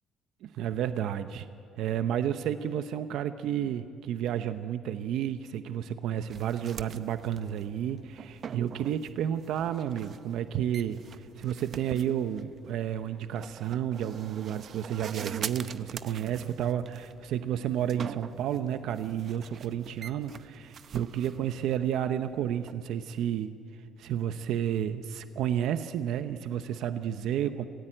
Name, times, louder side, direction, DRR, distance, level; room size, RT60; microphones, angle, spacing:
voice 1, 0.4-1.5 1.8-11.0 11.4-23.5 24.0-27.7, right 10 dB, 70° right, 10 dB, 0.8 m, -31 dB
sound 1, 6.3-22.7, right 7 dB, 45° right, 0.7 m, -44 dB
27.5 x 17.0 x 9.0 m, 2.4 s
cardioid pair, 135°, 0 cm